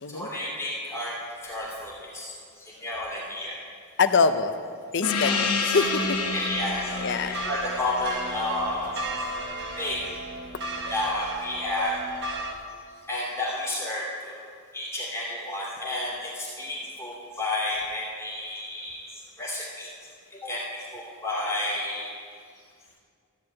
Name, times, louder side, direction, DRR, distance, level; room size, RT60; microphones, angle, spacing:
voice 1, 0.1-1.1 1.4-2.3 2.6-3.6 5.2-5.4 6.3-8.9 9.8-10.1 10.9-11.9 13.1-14.3 14.7-19.1 19.4-19.9 20.3-20.6 20.9-22.1, left 1 dB, 15° left, -6 dB, 2.5 m, -31 dB
voice 2, 4.0-4.5 4.9-6.2 7.0-7.3, left 5 dB, 55° left, 10 dB, 0.6 m, -24 dB
Gong, 5.0-10.0, left 4 dB, 75° left, 1.0 m, -30 dB
sound 1, 5.7-12.5, right 1 dB, 50° right, 1.1 m, -35 dB
14.0 x 4.8 x 8.5 m, 2.1 s
head